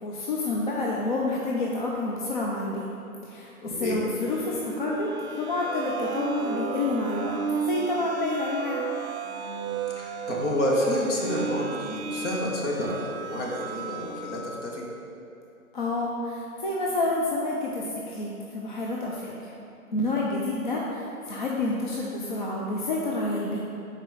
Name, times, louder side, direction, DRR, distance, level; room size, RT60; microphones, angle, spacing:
voice 1, 0.0-2.9 3.2-7.3 7.6-8.9 15.7-19.6 19.9-23.6, left 2 dB, 35° left, -3 dB, 0.5 m, -29 dB
voice 2, 3.6-4.0 10.0-14.9, left 1 dB, 55° left, -3 dB, 1.5 m, -29 dB
sound 1, 4.3-14.5, right 5 dB, 50° right, 0.5 m, -34 dB
5.9 x 4.3 x 4.9 m, 2.7 s
hypercardioid pair, 140°, 44 cm